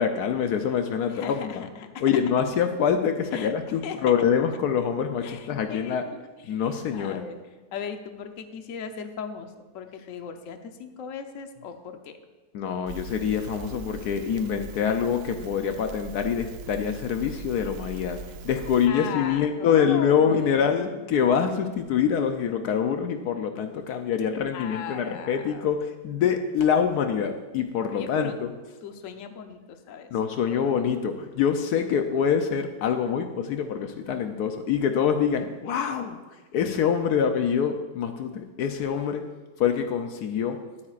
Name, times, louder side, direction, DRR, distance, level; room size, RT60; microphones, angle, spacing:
voice 1, 0.0-1.6 2.0-6.0 6.5-7.3 12.5-18.2 18.4-28.3 30.1-36.2 36.5-39.3 39.6-40.6, left 7 dB, 75° left, 6 dB, 1.2 m, -25 dB
voice 2, 1.1-2.1 3.3-3.5 3.8-4.1 5.2-7.4 7.7-12.1 18.9-21.1 24.5-25.8 27.9-28.3 28.8-30.2 30.5-30.8, left 7 dB, 60° left, 6 dB, 1.1 m, -38 dB
Crackle, 12.9-18.9, right 5 dB, 75° right, 0.5 m, -41 dB
22.0 x 8.7 x 2.5 m, 1.3 s
omnidirectional pair, 1.7 m